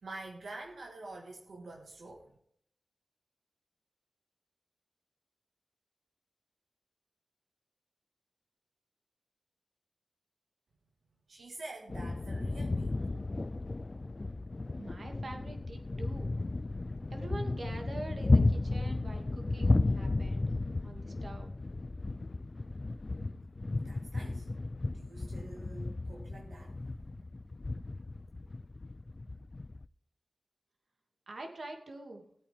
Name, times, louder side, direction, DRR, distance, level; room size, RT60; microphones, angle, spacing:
voice 1, 0.0-2.3 11.3-13.0 23.8-24.5 24.9-27.0, right 2 dB, 90° right, 1.8 m, -47 dB
sound 1, 11.9-29.8, left 2 dB, 40° left, 0.4 m, -33 dB
voice 2, 14.8-16.3 17.1-20.5 20.8-21.5 31.3-32.2, right 2 dB, 65° right, 2.4 m, -45 dB
18.0 x 8.7 x 3.6 m
wide cardioid pair, 60°, 0 cm